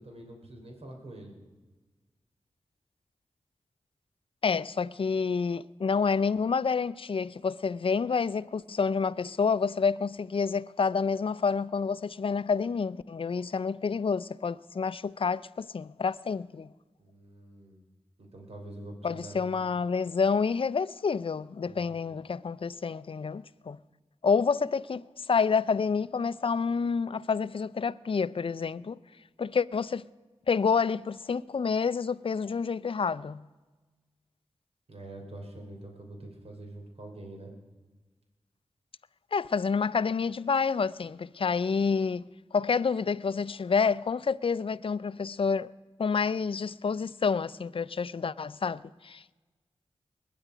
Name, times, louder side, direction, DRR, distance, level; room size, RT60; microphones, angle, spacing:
voice 1, 0.0-1.4 17.0-17.8 18.2-19.7 21.6-22.1 34.9-37.5, right 1 dB, 60° right, 3.2 m, -45 dB
voice 2, 4.4-16.7 19.0-23.8 24.2-29.0 29.4-30.0 30.5-33.5 39.3-45.7 46.0-49.3, left 5 dB, 50° left, 0.5 m, -28 dB
21.5 x 9.5 x 5.0 m
cardioid pair, 45°, 12 cm